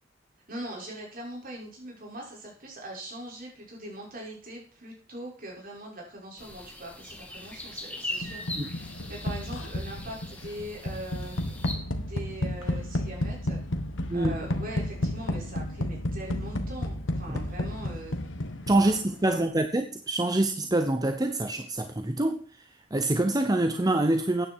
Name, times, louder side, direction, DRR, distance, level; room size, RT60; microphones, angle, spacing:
voice 1, 0.5-11.4 12.0-13.6 14.1-18.1 18.8-19.5, right 1 dB, 50° right, -2 dB, 5.9 m, -41 dB
sound 1, 6.4-11.7, left 1 dB, 10° left, 2.3 m, -40 dB
sound 2, 8.2-19.1, left 1 dB, 70° left, 1.5 m, -32 dB
voice 2, 18.7-22.4 22.9-24.5, right 2 dB, 20° right, 7 dB, 0.8 m, -25 dB
14.0 x 9.6 x 4.6 m, 0.42 s
head